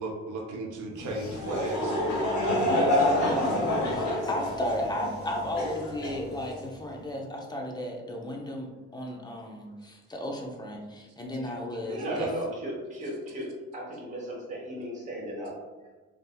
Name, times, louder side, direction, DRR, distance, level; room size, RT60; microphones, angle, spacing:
voice 1, 0.0-2.0 2.7-3.4 11.8-12.3, right 2 dB, 85° right, 0 dB, 0.7 m, -34 dB
Laughter / Crowd, 1.0-6.7, left 1 dB, 65° left, 1.2 m, -28 dB
voice 2, 2.7-12.3, left 1 dB, 15° left, 0 dB, 0.6 m, -34 dB
voice 3, 11.9-15.9, equal, 25° right, -4 dB, 0.9 m, -37 dB
3.6 x 2.8 x 2.2 m, 1.3 s
cardioid pair, 90°, 30 cm